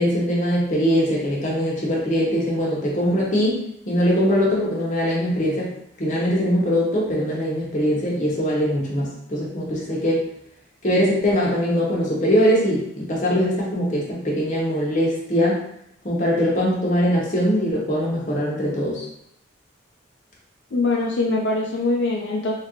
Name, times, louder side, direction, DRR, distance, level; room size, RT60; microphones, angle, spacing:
voice 1, 0.0-3.6 3.9-5.7 6.0-10.2 10.8-15.6 16.0-19.0, equal, 40° left, -4 dB, 0.8 m, -21 dB
voice 2, 20.7-22.5, left 2 dB, 70° left, -3 dB, 0.4 m, -22 dB
2.9 x 2.5 x 2.9 m, 0.75 s
head